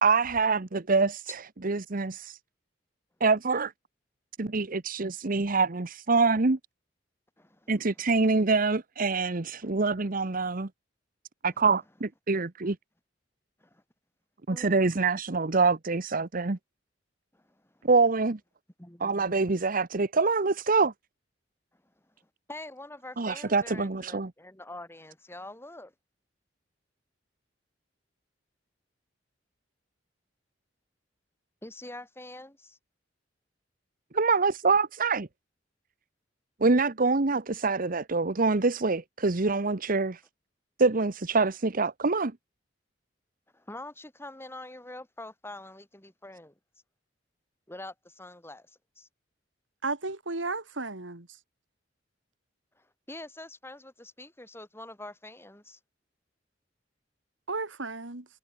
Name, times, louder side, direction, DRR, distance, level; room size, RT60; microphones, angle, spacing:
voice 1, 0.0-1.4 1.6-2.4 3.2-3.7 4.4-6.6 7.7-10.7 11.4-12.8 14.5-16.6 17.8-18.4 19.0-20.9 23.2-24.3 34.1-35.3 36.6-40.2 40.8-42.3, right 4 dB, 50° right, 1.0 m, -25 dB
voice 2, 7.4-7.7 11.5-11.7 12.6-12.7 13.6-13.8 14.5-14.8 17.3-17.9 18.8-19.5 21.7-21.8 22.5-25.9 31.6-32.8 43.5-46.5 47.7-49.1 52.8-55.8, left 2 dB, 15° left, 4.7 m, -45 dB
voice 3, 49.8-51.3 57.5-58.3, right 3 dB, 85° right, 2.7 m, -33 dB
head